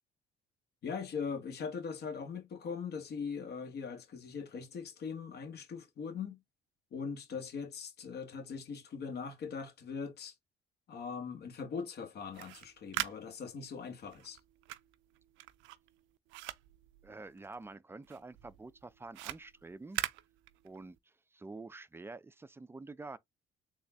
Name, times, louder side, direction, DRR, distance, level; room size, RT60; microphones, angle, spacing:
voice 1, 0.8-6.4 6.9-10.3 10.9-14.4, left 5 dB, 55° left, 1.2 m, -41 dB
sound 1, 12.2-17.7 18.0-21.0, right 17 dB, 80° right, 0.4 m, -42 dB
voice 2, 17.0-20.0 20.6-23.2, right 3 dB, 10° right, 0.4 m, -48 dB
3.8 x 2.3 x 3.4 m
supercardioid pair, 65°, 20 cm